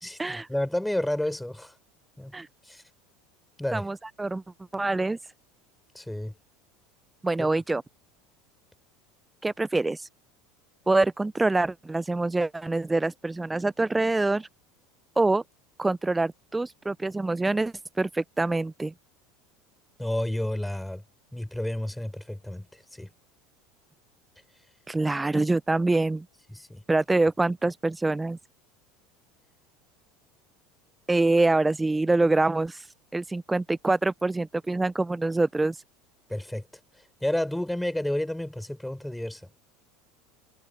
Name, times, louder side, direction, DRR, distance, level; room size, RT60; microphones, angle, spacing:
voice 1, 0.0-1.7 2.2-2.3 2.6-2.8 3.6-3.9 5.9-6.3 7.4-7.5 20.0-21.0 21.3-23.1 26.5-26.8 36.3-36.7 37.2-39.5, left 1 dB, 5° left, 4.5 m, -31 dB
voice 2, 3.7-4.4 4.7-5.2 7.2-7.8 9.4-10.1 10.9-14.5 15.2-15.4 15.8-18.9 24.9-26.3 26.9-28.4 31.1-32.8 33.1-35.8, right 2 dB, 10° right, 0.8 m, -25 dB
figure-of-eight pair, 75°, 0 cm